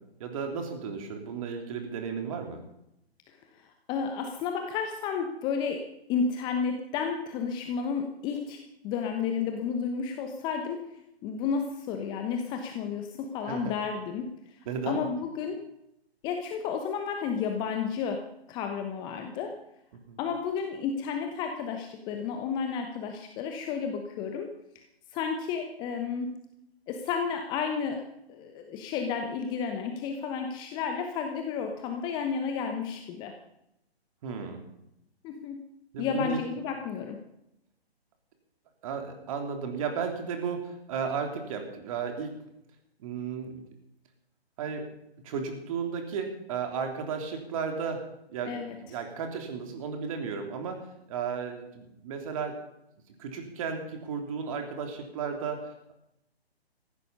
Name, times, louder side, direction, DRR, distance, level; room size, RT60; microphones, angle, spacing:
voice 1, 0.2-2.6 13.5-13.7 14.7-15.0 20.1-20.2 34.2-34.6 35.9-36.4 38.8-42.3 43.0-43.6 44.6-44.9 45.2-48.0 48.3-50.8 51.1-52.6 53.2-55.9, right 6 dB, 30° right, 4 dB, 3.2 m, -34 dB
voice 2, 3.9-5.8 6.1-10.8 11.2-14.3 14.9-15.6 16.2-18.2 18.5-19.5 20.2-24.5 24.7-24.8 25.1-26.3 26.9-28.0 28.3-33.3 35.2-35.6 36.0-37.2 48.5-48.7, left 6 dB, 15° left, 5 dB, 1.0 m, -32 dB
17.0 x 15.0 x 5.5 m, 0.82 s
figure-of-eight pair, 135°, 32 cm